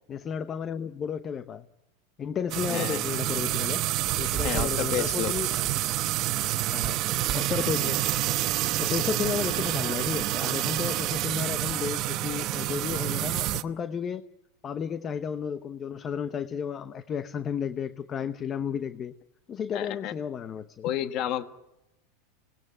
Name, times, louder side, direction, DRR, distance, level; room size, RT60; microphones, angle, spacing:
voice 1, 0.1-1.7 2.2-3.8 4.2-5.7 6.7-7.0 7.3-8.0 8.8-14.2 14.6-19.1 19.5-20.9, left 7 dB, 30° left, 12 dB, 0.9 m, -33 dB
sound 1, 2.5-13.6, right 15 dB, 45° right, 1.0 m, -28 dB
voice 2, 2.7-3.0 4.4-5.3 19.7-20.1 20.8-21.4, left 11 dB, 50° left, 10 dB, 1.4 m, -30 dB
27.0 x 19.0 x 8.9 m, 0.92 s
supercardioid pair, 120°, 0 cm